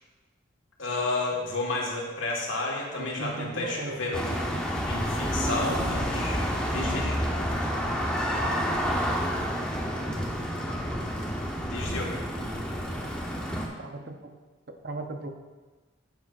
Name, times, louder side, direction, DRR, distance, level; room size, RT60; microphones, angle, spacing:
voice 1, 0.8-4.3 4.9-6.4 6.7-7.2 7.5-7.7 11.7-12.2, left 2 dB, 85° left, -2 dB, 1.7 m, -31 dB
voice 2, 3.0-4.2 4.5-4.6 13.8-14.4 14.8-15.3, right 2 dB, 55° right, 5 dB, 0.7 m, -37 dB
sound 1, 4.1-13.7, equal, 5° left, 0.8 m, -29 dB
9.6 x 7.1 x 2.5 m, 1.2 s
head